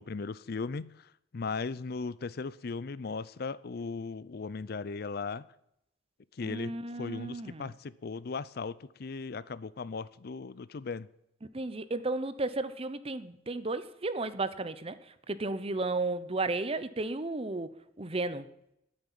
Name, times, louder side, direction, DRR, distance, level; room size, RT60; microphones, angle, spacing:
voice 1, 0.0-5.5 6.3-11.1, left 4 dB, 55° left, 19 dB, 0.5 m, -37 dB
voice 2, 6.4-7.7 11.5-15.0 15.3-18.5, right 2 dB, 30° right, 13 dB, 0.8 m, -33 dB
9.7 x 8.8 x 10.0 m, 0.80 s
head